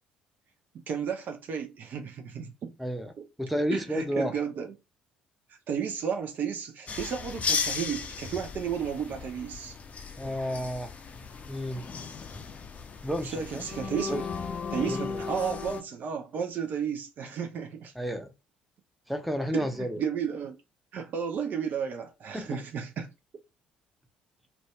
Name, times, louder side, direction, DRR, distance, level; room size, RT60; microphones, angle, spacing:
voice 1, 0.9-2.7 3.7-4.7 5.7-9.7 13.2-14.3 14.7-17.9 19.5-20.6 20.9-23.1, right 7 dB, 50° right, 0.4 m, -33 dB
voice 2, 2.8-3.1 3.4-4.3 10.2-10.9 11.5-11.9 13.0-13.6 14.1-14.2 14.9-15.1 17.9-18.3 19.1-20.0 22.3-22.6, equal, ahead, 0.7 m, -31 dB
sound 1, 6.9-15.8, left 5 dB, 35° left, 0.5 m, -35 dB
2.6 x 2.2 x 3.1 m
figure-of-eight pair, 50°, 4 cm